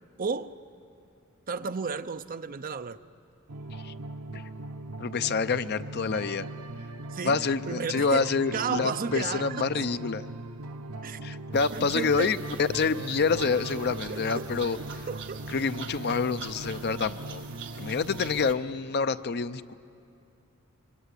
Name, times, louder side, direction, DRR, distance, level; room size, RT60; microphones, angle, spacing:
voice 1, 0.2-0.6 1.5-3.0 7.1-7.4 7.7-9.7 11.0-11.2 11.7-12.4 14.1-14.5 15.1-15.4, right 5 dB, 40° right, 11 dB, 0.6 m, -33 dB
sound 1, 3.5-18.5, right 2 dB, 85° right, 0.9 m, -40 dB
voice 2, 5.0-6.5 7.2-10.3 11.2-15.1 15.5-17.4 17.8-19.7, left 5 dB, 50° left, 12 dB, 0.6 m, -27 dB
sound 2, 11.5-18.5, right 5 dB, 60° right, 1.9 m, -44 dB
25.5 x 24.0 x 8.3 m, 2.5 s
head